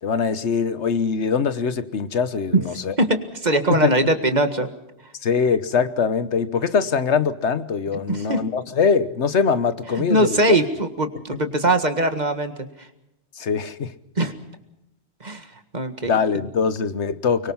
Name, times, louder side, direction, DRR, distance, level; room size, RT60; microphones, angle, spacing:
voice 1, 0.0-2.9 3.7-3.9 5.2-10.6 11.3-11.4 13.3-14.0 16.0-17.5, left 6 dB, 90° left, 1.4 m, -22 dB
voice 2, 3.0-4.7 5.0-5.1 8.1-8.4 9.9-12.9 14.2-14.3 15.2-16.1, right 1 dB, 40° right, 1.9 m, -21 dB
25.0 x 23.0 x 5.6 m
omnidirectional pair, 1.1 m